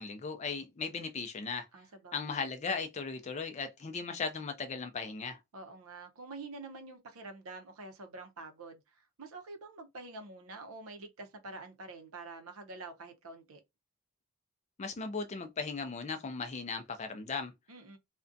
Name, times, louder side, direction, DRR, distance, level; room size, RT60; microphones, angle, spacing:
voice 1, 0.0-1.7 2.1-5.4 14.8-17.5, left 4 dB, 30° left, 0.4 m, -37 dB
voice 2, 1.7-2.4 5.5-13.6 17.7-18.0, right 3 dB, 75° right, 0.6 m, -47 dB
2.4 x 2.1 x 2.5 m
head